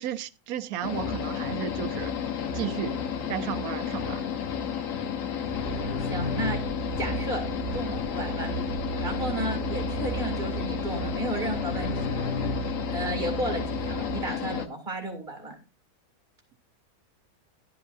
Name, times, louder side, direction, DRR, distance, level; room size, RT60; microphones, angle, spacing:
voice 1, 0.0-2.1 2.5-3.0 3.3-4.3, right 11 dB, 80° right, 1.1 m, -33 dB
sound 1, 0.8-14.7, left 8 dB, 65° left, 1.1 m, -32 dB
sound 2, 0.9-12.9, left 2 dB, 40° left, 1.5 m, -38 dB
sound 3, 5.5-14.3, right 8 dB, 20° left, 3.9 m, -37 dB
voice 2, 6.1-6.6 7.0-8.5 9.0-12.3 12.9-15.5, right 1 dB, 35° right, 2.5 m, -33 dB
12.0 x 7.7 x 2.6 m
omnidirectional pair, 1.6 m